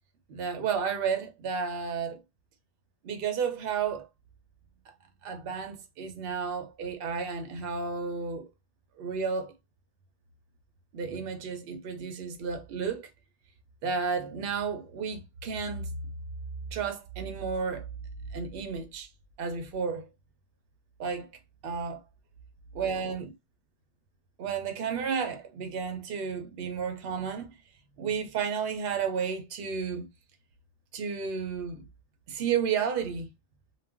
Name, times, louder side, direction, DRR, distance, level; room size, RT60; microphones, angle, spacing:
voice 1, 0.3-2.2 3.0-4.1 5.2-8.5 9.0-9.5 10.9-13.1 13.8-15.9 16.7-17.8 18.3-19.1 19.4-20.1 21.0-21.3 21.6-22.0 22.7-23.3 24.4-27.5 28.0-30.1 30.9-31.8 32.3-33.3, right 6 dB, 65° right, 0.6 m, -32 dB
2.4 x 2.0 x 3.3 m
omnidirectional pair, 1.4 m